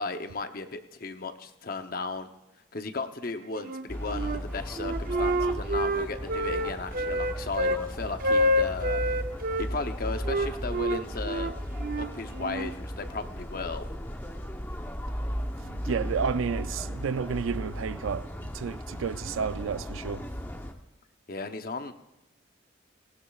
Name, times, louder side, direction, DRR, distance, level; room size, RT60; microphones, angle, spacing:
voice 1, 0.0-2.3 2.7-9.0 9.6-11.5 12.0-13.9 21.3-21.9, left 3 dB, 45° left, 0.7 m, -35 dB
Wind instrument woodwind instrument, 3.6-4.4 4.8-7.8 8.2-9.7 10.2-12.7, equal, 45° right, 0.6 m, -28 dB
sound 1, 3.9-20.7, equal, 10° left, 0.8 m, -36 dB
voice 2, 15.6-20.3, right 6 dB, 90° right, 0.4 m, -31 dB
18.5 x 17.0 x 2.4 m
head